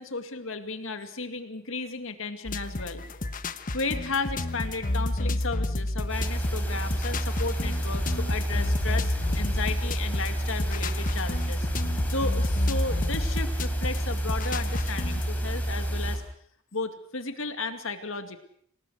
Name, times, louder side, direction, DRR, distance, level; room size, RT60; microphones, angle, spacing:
voice 1, 0.0-3.0 3.7-16.2 16.7-18.4, left 3 dB, 65° left, 8 dB, 2.4 m, -34 dB
sound 1, 2.5-15.3, left 2 dB, 40° left, 1.1 m, -31 dB
sound 2, 6.1-16.2, right 1 dB, 10° left, 3.9 m, -29 dB
27.0 x 18.5 x 6.4 m, 0.64 s
head